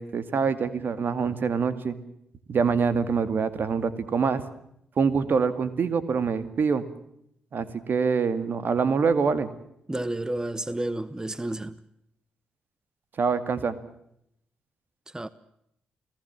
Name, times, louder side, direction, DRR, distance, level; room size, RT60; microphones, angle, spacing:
voice 1, 0.0-2.0 2.5-4.5 5.0-6.8 7.5-9.5 13.2-13.8, right 5 dB, 60° right, 2.2 m, -25 dB
voice 2, 9.9-11.8 15.1-15.3, right 1 dB, 15° right, 1.2 m, -31 dB
30.0 x 17.5 x 7.3 m
supercardioid pair, 45°, 4 cm